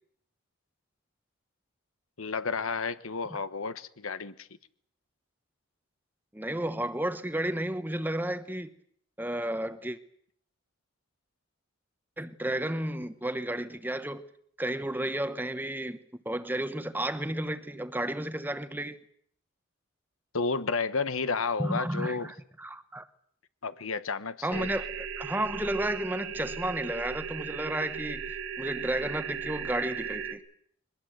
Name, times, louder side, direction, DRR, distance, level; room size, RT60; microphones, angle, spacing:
voice 1, 2.2-4.5 20.3-22.3 23.6-24.7, left 4 dB, 80° left, 1.1 m, -31 dB
voice 2, 6.3-8.7 9.2-10.0 12.2-14.2 14.6-16.0 16.2-19.0 21.6-23.0 24.4-30.4, right 1 dB, 10° right, 1.0 m, -32 dB
sound 1, 24.5-30.3, right 6 dB, 60° right, 2.3 m, -37 dB
22.5 x 20.5 x 8.0 m
head